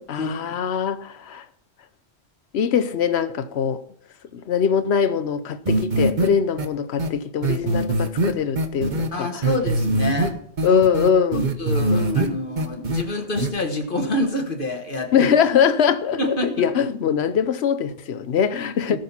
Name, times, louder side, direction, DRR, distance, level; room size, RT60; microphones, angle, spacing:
voice 1, 0.0-1.5 2.5-3.8 4.3-9.5 10.6-11.5 11.9-12.4 15.1-19.0, left 7 dB, 85° left, 1.0 m, -22 dB
sound 1, 5.7-6.3 6.6-6.7 7.0-7.1 7.4-9.1 9.4-10.3 10.6-12.3 12.6-13.0 13.4-13.5, right 2 dB, 50° right, 1.1 m, -22 dB
voice 2, 9.1-10.4 10.6-10.8 11.6-15.3 16.2-16.7 18.9-19.0, left 1 dB, 55° left, 1.7 m, -27 dB
18.5 x 6.5 x 4.3 m
omnidirectional pair, 1.1 m